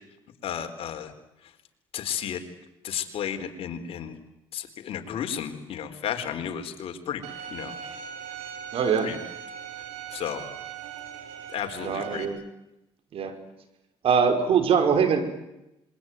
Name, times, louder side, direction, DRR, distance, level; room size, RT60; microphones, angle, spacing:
voice 1, 0.4-1.1 1.4-1.5 1.9-2.4 2.8-4.2 4.5-7.2 7.5-7.8 8.3-8.5 9.0-9.2 10.1-10.5 11.5-12.4, left 9 dB, 65° left, 6 dB, 4.0 m, -33 dB
Bowed string instrument, 7.2-12.2, right 8 dB, 85° right, 4.0 m, -40 dB
voice 2, 8.7-9.1 11.8-12.4 13.1-13.3 14.0-15.4, right 6 dB, 60° right, 8 dB, 5.5 m, -22 dB
26.5 x 23.0 x 9.4 m, 0.90 s
supercardioid pair, 80°, 11 cm